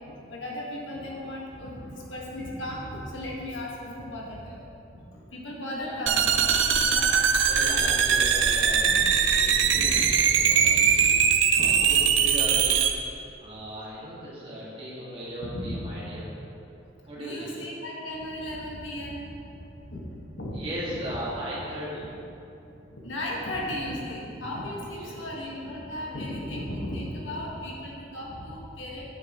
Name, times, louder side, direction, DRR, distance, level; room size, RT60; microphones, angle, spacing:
voice 1, 0.0-4.6 5.3-6.4 6.8-7.1 8.8-8.9 9.6-10.1 10.5-10.9 11.5-11.6 15.5-15.7 17.2-19.2 19.9-20.0 20.3-20.6 23.0-29.0, left 1 dB, 85° left, -4 dB, 1.8 m, -35 dB
sound 1, 6.1-12.9, right 7 dB, 85° right, 0.6 m, -21 dB
voice 2, 7.4-12.8 13.4-16.3 17.1-17.5 20.5-22.1 24.9-25.2, equal, 30° right, -8 dB, 2.2 m, -37 dB
9.7 x 9.1 x 3.2 m, 2.8 s
head